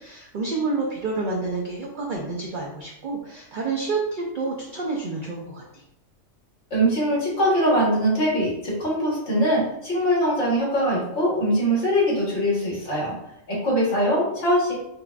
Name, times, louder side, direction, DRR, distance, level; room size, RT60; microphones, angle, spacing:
voice 1, 0.0-5.8, right 3 dB, 65° right, -1 dB, 0.5 m, -29 dB
voice 2, 6.7-13.1 13.5-14.7, equal, 60° left, -5 dB, 1.6 m, -22 dB
5.3 x 2.2 x 2.4 m, 0.81 s
omnidirectional pair, 1.4 m